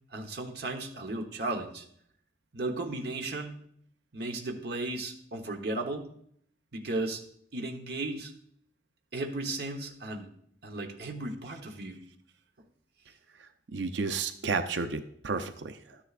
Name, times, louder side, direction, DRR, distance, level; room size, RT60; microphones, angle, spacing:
voice 1, 0.1-1.8 2.5-3.6 4.1-6.1 6.7-7.2 7.5-8.3 9.1-10.3 10.6-12.0, right 2 dB, 65° right, 3 dB, 1.1 m, -35 dB
voice 2, 13.4-16.0, right 4 dB, 90° right, 9 dB, 0.6 m, -32 dB
12.5 x 10.0 x 2.5 m, 0.68 s
head